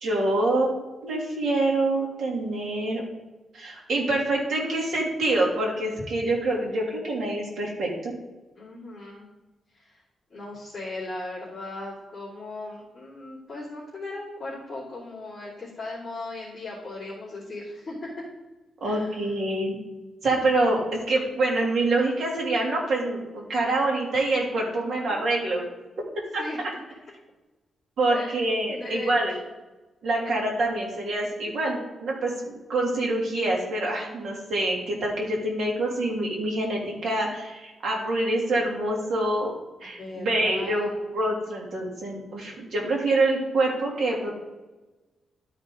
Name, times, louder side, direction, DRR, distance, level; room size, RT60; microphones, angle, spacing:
voice 1, 0.0-0.7 1.0-3.0 3.5-8.1 18.8-19.8 20.2-25.7 26.3-26.4 28.0-29.3 30.0-44.3, right 2 dB, 60° right, -2 dB, 2.7 m, -26 dB
voice 2, 8.6-9.3 9.7-10.0 10.3-18.1 18.8-19.2 24.7-25.2 26.4-26.6 28.1-28.4 28.7-29.1 40.0-41.0, left 2 dB, 25° left, -10 dB, 2.7 m, -38 dB
12.0 x 5.2 x 3.8 m, 1.1 s
wide cardioid pair, 150°, 0 cm